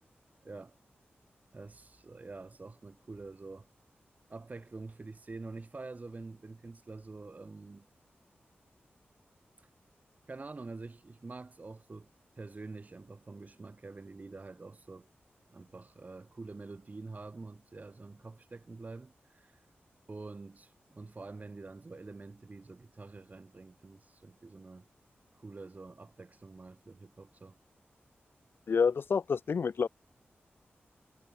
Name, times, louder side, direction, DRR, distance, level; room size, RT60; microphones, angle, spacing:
voice 1, 0.4-0.8 1.5-3.7 4.3-7.9 10.3-12.1 12.4-15.1 15.5-19.6 20.1-24.9 25.3-27.6, right 3 dB, 40° right, 0.9 m, -47 dB
voice 2, 28.7-29.9, left 5 dB, 60° left, 0.3 m, -28 dB
cardioid pair, 65°, 4 cm